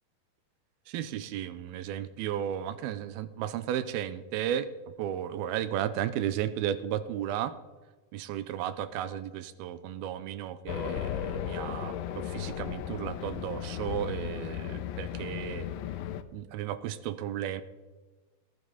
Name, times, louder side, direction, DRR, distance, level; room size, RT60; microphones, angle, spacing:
voice 1, 0.9-4.7 5.0-7.5 8.1-15.7 16.3-17.6, right 10 dB, 85° right, 13 dB, 2.6 m, -34 dB
Race car auto racing, 10.7-16.2, left 10 dB, 80° left, 2.2 m, -35 dB
19.0 x 10.5 x 4.0 m, 1.2 s
omnidirectional pair, 4.4 m